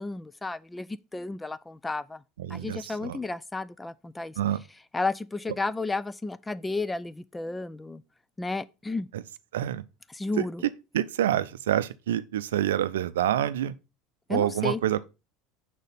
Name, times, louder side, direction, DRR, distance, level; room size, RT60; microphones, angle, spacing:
voice 1, 0.0-2.2 2.5-4.3 4.9-8.0 8.4-9.1 10.1-10.6 14.3-14.8, left 3 dB, 10° left, 0.4 m, -32 dB
voice 2, 2.4-3.2 4.4-4.6 9.1-9.2 9.5-9.8 10.4-10.5 10.9-13.7 14.3-15.0, right 11 dB, 70° right, 0.5 m, -27 dB
6.5 x 5.0 x 5.6 m
figure-of-eight pair, 75°, 0 cm